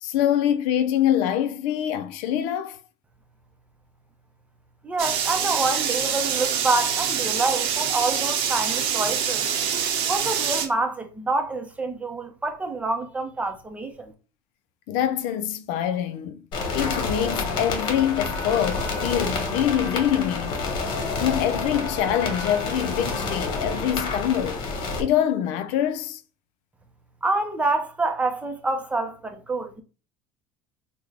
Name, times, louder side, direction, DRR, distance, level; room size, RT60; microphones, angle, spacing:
voice 1, 0.0-2.8 14.9-16.4 16.7-20.8 21.2-24.6 25.0-26.2, left 10 dB, 75° left, 0.4 m, -25 dB
voice 2, 4.8-9.5 10.1-14.1 27.2-29.8, right 2 dB, 15° right, 0.6 m, -27 dB
sound 1, 5.0-10.7, right 8 dB, 70° right, 0.7 m, -25 dB
sound 2, 16.5-25.0, left 3 dB, 55° left, 1.3 m, -28 dB
3.5 x 2.2 x 3.3 m
cardioid pair, 125°, 10 cm